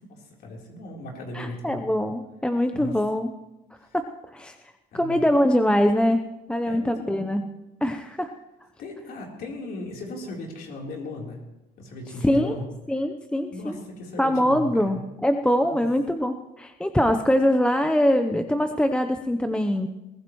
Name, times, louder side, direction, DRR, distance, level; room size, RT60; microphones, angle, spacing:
voice 1, 0.1-1.8 2.7-3.0 3.8-4.0 4.9-5.2 6.6-7.2 8.8-11.4 11.8-12.7 13.5-15.0 15.6-15.8, left 1 dB, 65° left, -1 dB, 3.7 m, -37 dB
voice 2, 1.3-3.3 3.9-4.1 4.3-4.5 4.9-6.2 6.5-7.4 7.8-8.3 12.2-12.5 12.9-13.8 14.2-19.9, equal, 5° left, 6 dB, 0.7 m, -23 dB
21.5 x 15.5 x 3.1 m, 1.0 s
cardioid pair, 110°, 17 cm